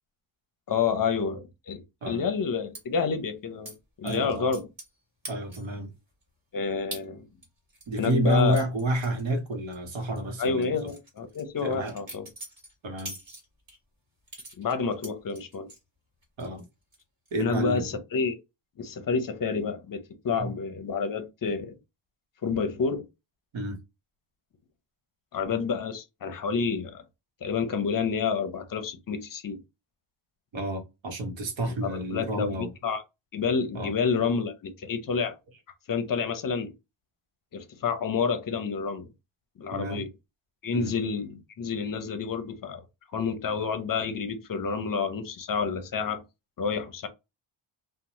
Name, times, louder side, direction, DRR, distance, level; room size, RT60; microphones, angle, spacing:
voice 1, 0.7-4.7 6.5-7.3 8.0-8.6 10.4-12.3 14.6-15.7 17.4-18.4 18.8-21.8 22.4-23.1 25.3-27.0 27.4-29.6 31.8-33.0 33.3-35.4 35.9-36.7 37.5-39.1 39.6-40.1 40.6-42.8 43.1-46.2 46.6-47.1, left 5 dB, 45° left, 0.6 m, -29 dB
sound 1, 2.7-2.8 3.6-3.8 4.1-5.0 5.2-5.8 6.2-6.3 6.9-7.0 7.4-9.8 10.0-10.2 10.6-13.8 14.3-15.8 16.2-16.6 16.9-17.3, right 1 dB, 40° right, 1.6 m, -44 dB
voice 2, 4.0-4.5 5.3-5.9 7.9-10.9 11.6-11.9 12.8-13.2 16.4-16.6 17.3-17.9 20.4-20.5 23.5-23.8 30.5-32.7 33.7-33.9 39.7-40.1 40.7-40.9, right 1 dB, 65° right, 1.0 m, -29 dB
2.6 x 2.1 x 3.0 m
wide cardioid pair, 150°, 49 cm